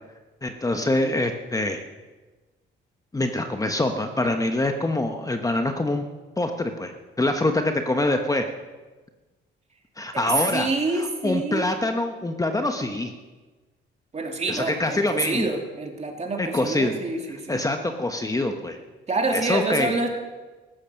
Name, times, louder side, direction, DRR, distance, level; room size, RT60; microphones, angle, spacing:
voice 1, 0.4-1.8 3.1-6.1 6.4-6.9 7.2-8.4 10.0-13.1 14.5-15.5 16.4-16.9 17.5-18.8 19.3-19.9, left 2 dB, 15° left, 5 dB, 1.1 m, -25 dB
voice 2, 10.4-11.7 14.1-17.6 19.1-20.1, right 3 dB, 35° right, 2 dB, 2.9 m, -27 dB
15.0 x 11.5 x 6.5 m, 1.2 s
cardioid pair, 90°, 20 cm